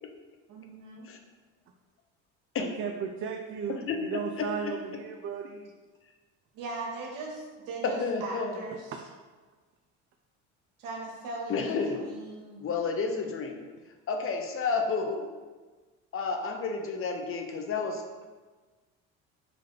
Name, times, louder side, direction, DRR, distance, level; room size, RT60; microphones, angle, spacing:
voice 1, 0.5-1.1 6.5-8.9 10.8-12.7, right 3 dB, 65° right, -1 dB, 1.1 m, -39 dB
voice 2, 2.6-5.7 8.9-9.0, right 6 dB, 35° right, 3 dB, 0.4 m, -35 dB
voice 3, 3.7-4.7 7.8-8.6 11.5-12.1 12.6-13.6 14.1-15.3 16.1-18.3, left 4 dB, 40° left, 4 dB, 0.6 m, -31 dB
3.4 x 3.2 x 3.7 m, 1.3 s
supercardioid pair, 75°, 35 cm